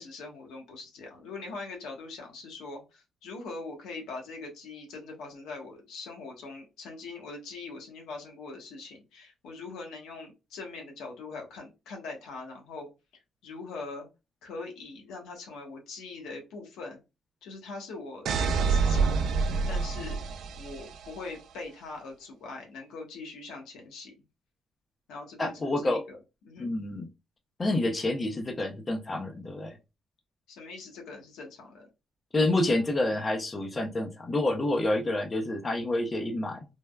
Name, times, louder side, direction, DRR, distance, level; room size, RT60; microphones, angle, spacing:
voice 1, 0.0-12.9 13.4-14.1 14.4-17.0 17.4-20.2 20.5-24.1 25.1-26.2 26.4-26.7 30.5-31.9, left 3 dB, 90° left, 0.9 m, -42 dB
sound 1, 18.3-21.1, right 4 dB, 70° right, 0.3 m, -27 dB
voice 2, 25.4-26.0 26.6-27.1 27.6-29.8 32.3-36.7, left 2 dB, 30° left, 0.5 m, -28 dB
3.3 x 2.0 x 2.2 m
cardioid pair, 90°, 0 cm